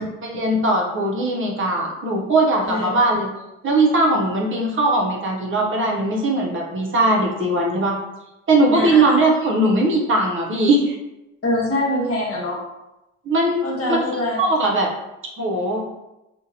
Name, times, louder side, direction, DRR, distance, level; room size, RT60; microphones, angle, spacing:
voice 1, 0.0-3.3 3.6-8.0 8.5-11.0 13.3-13.6 13.9-14.0 14.4-14.9 15.4-15.8, right 2 dB, 40° right, -1 dB, 0.6 m, -19 dB
voice 2, 8.7-9.2 11.4-12.6 13.6-14.4, left 1 dB, 50° left, -3 dB, 0.9 m, -24 dB
2.7 x 2.2 x 2.7 m, 0.93 s
cardioid pair, 90°, 30 cm